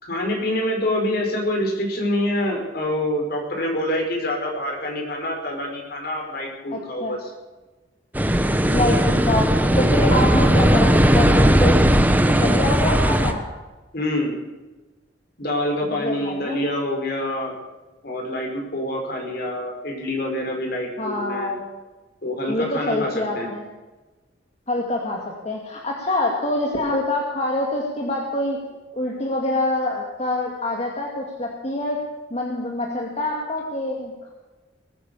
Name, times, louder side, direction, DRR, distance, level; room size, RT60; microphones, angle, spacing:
voice 1, 0.0-7.3 9.7-10.2 13.9-14.3 15.4-17.5 18.0-21.5 22.2-23.1 23.3-23.5, left 1 dB, 60° left, 1 dB, 5.0 m, -26 dB
voice 2, 6.7-7.1 8.7-11.8 12.1-13.4 15.9-16.6 21.0-21.6 22.5-23.6 24.7-28.6 28.9-32.0 32.3-34.3, left 1 dB, 35° left, -1 dB, 2.4 m, -25 dB
sound 1, 8.1-13.3, equal, 10° right, 1.2 m, -17 dB
20.5 x 9.9 x 6.9 m, 1.2 s
head